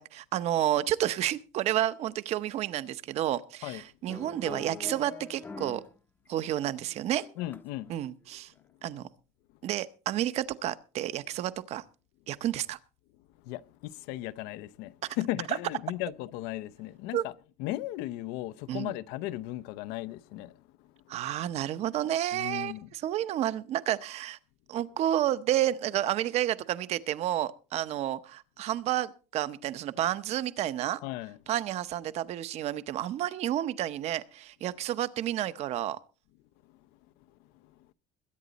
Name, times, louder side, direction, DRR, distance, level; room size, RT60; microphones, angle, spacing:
voice 1, 0.0-5.8 6.3-7.3 7.9-8.5 8.8-9.1 9.6-11.8 12.3-12.8 15.5-15.6 17.1-17.2 18.7-18.9 21.1-24.4 24.7-31.0 31.5-36.0, right 12 dB, 40° right, 0.8 m, -30 dB
sound 1, 4.1-5.9 6.3-7.9 8.3-8.6, left 3 dB, 10° left, 0.7 m, -44 dB
voice 2, 7.4-7.9 13.4-17.3 17.6-20.6 22.3-22.9 31.0-31.4, left 16 dB, 65° left, 0.6 m, -36 dB
21.5 x 9.3 x 4.1 m
cardioid pair, 180°, 17 cm